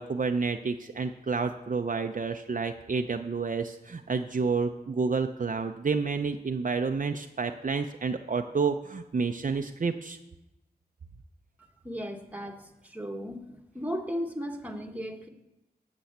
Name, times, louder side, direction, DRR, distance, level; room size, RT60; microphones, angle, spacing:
voice 1, 0.0-10.2, right 4 dB, 50° right, 6 dB, 0.6 m, -29 dB
voice 2, 11.8-13.4 13.7-15.3, equal, 10° right, 3 dB, 1.4 m, -35 dB
11.5 x 6.2 x 8.0 m, 0.94 s
wide cardioid pair, 75°, 17 cm